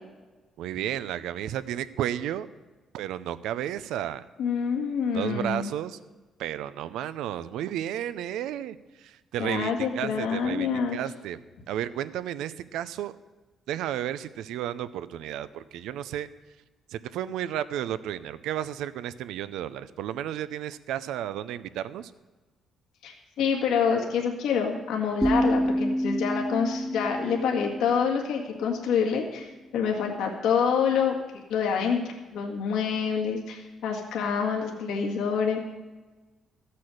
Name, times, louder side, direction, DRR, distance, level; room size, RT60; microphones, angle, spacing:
voice 1, 0.6-2.5 2.9-4.2 5.1-6.0 6.4-13.1 13.7-16.3 16.9-22.1, right 11 dB, 90° right, 15 dB, 0.5 m, -33 dB
voice 2, 4.4-5.7 9.4-11.0 23.0-29.5 29.7-31.2 31.5-32.0 32.3-35.6, left 6 dB, 85° left, 0 dB, 1.8 m, -27 dB
sound 1, 25.2-29.1, equal, 5° right, 0.5 m, -29 dB
14.0 x 8.4 x 6.5 m, 1.2 s
cardioid pair, 90°, 0 cm